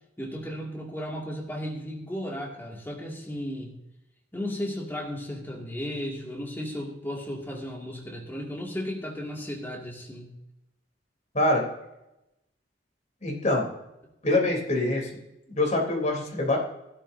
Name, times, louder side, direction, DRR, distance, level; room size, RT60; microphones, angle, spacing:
voice 1, 0.2-3.8 4.3-10.3, equal, 10° left, -2 dB, 2.5 m, -35 dB
voice 2, 13.2-13.7 14.2-15.1 15.6-16.6, left 2 dB, 40° left, 0 dB, 3.5 m, -24 dB
15.5 x 12.5 x 2.8 m, 0.88 s
head